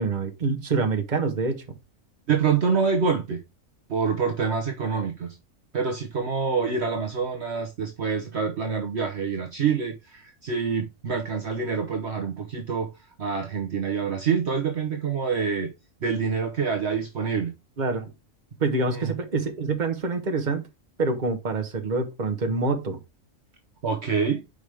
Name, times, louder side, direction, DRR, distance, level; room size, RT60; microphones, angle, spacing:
voice 1, 0.0-1.6 17.8-18.1 18.6-20.7 21.0-23.0, right 3 dB, 35° right, 1.3 m, -26 dB
voice 2, 2.3-3.4 3.9-5.4 5.7-12.9 13.2-15.7 16.0-17.5 18.9-19.1 23.8-24.4, right 5 dB, 55° right, 1.2 m, -26 dB
5.4 x 5.0 x 4.9 m
omnidirectional pair, 1.4 m